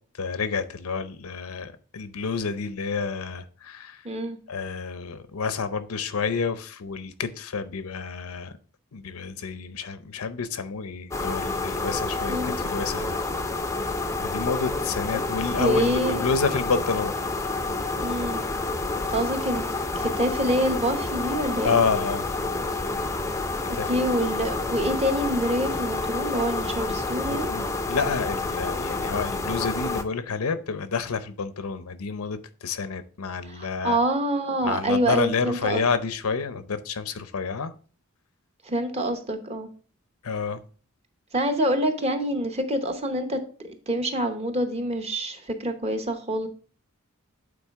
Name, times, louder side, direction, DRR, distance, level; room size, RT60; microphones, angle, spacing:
voice 1, 0.1-4.0 4.5-8.6 8.9-13.2 14.2-17.1 21.6-22.3 23.7-24.0 27.3-34.0 34.6-37.7 40.2-40.6, left 5 dB, 85° left, 0.6 m, -29 dB
voice 2, 4.0-4.4 12.3-12.6 15.1-15.2 15.6-16.2 17.7-18.4 19.1-19.7 20.0-21.8 23.7-27.5 33.5-35.8 38.6-39.7 41.3-46.5, right 1 dB, 30° right, 0.8 m, -26 dB
sound 1, 11.1-30.0, left 3 dB, 15° left, 0.4 m, -29 dB
8.6 x 3.9 x 3.6 m
head